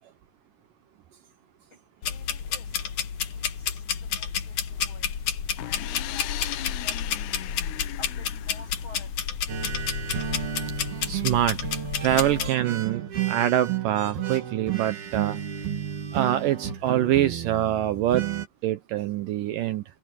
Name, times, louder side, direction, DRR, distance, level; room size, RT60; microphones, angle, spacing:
voice 1, 1.7-2.8 3.3-5.2 5.6-7.0 8.0-9.4, left 3 dB, 25° left, 8.4 m, -51 dB
sound 1, 2.0-12.5, left 7 dB, 55° left, 2.7 m, -30 dB
sound 2, 5.6-9.3, left 16 dB, 75° left, 2.8 m, -38 dB
sound 3, 9.5-18.5, right 10 dB, 65° right, 4.4 m, -32 dB
voice 2, 11.1-11.6 12.0-15.4 16.1-18.3 18.6-19.8, right 12 dB, 90° right, 1.9 m, -25 dB
open air
omnidirectional pair, 5.0 m